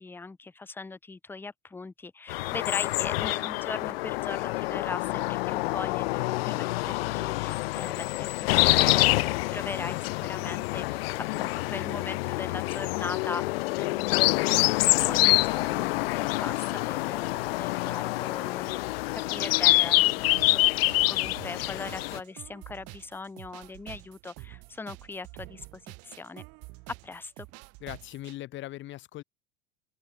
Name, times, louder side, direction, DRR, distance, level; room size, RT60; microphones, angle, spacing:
voice 1, 0.0-14.5 15.1-18.8 19.3-20.6 21.1-26.4 27.0-27.5, left 3 dB, 5° left, 0.8 m, -40 dB
sound 1, 2.3-22.2, left 21 dB, 85° left, 0.6 m, -26 dB
sound 2, 20.4-28.4, right 25 dB, 55° right, 3.3 m, -47 dB
voice 2, 27.8-29.2, left 15 dB, 40° left, 1.7 m, -39 dB
open air
supercardioid pair, 130°, 29 cm